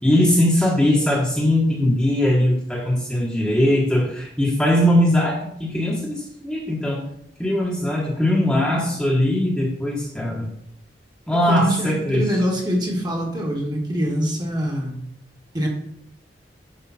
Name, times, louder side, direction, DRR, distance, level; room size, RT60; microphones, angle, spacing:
voice 1, 0.0-7.0 7.4-10.5 11.3-12.2, left 1 dB, 5° left, -3 dB, 1.4 m, -20 dB
voice 2, 11.5-15.1 15.5-15.7, equal, 25° right, 0 dB, 1.9 m, -24 dB
11.0 x 5.0 x 4.3 m, 0.71 s
head